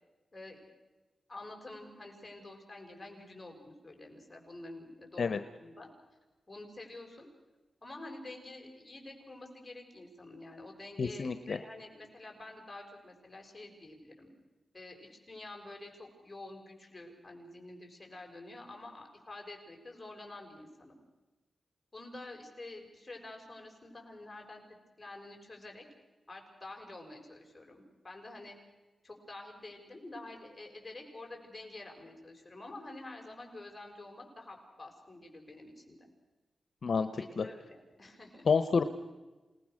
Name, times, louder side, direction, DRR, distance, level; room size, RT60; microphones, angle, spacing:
voice 1, 0.3-0.7 1.3-5.9 6.5-7.3 7.8-14.3 14.7-21.0 21.9-24.6 25.0-25.9 26.3-28.6 29.0-36.0 37.2-38.5, left 2 dB, 20° left, 2 dB, 6.1 m, -48 dB
voice 2, 11.0-11.6 36.8-37.4 38.5-38.8, left 5 dB, 65° left, 10 dB, 1.0 m, -29 dB
28.0 x 19.5 x 6.5 m, 1.2 s
wide cardioid pair, 85°, 0 cm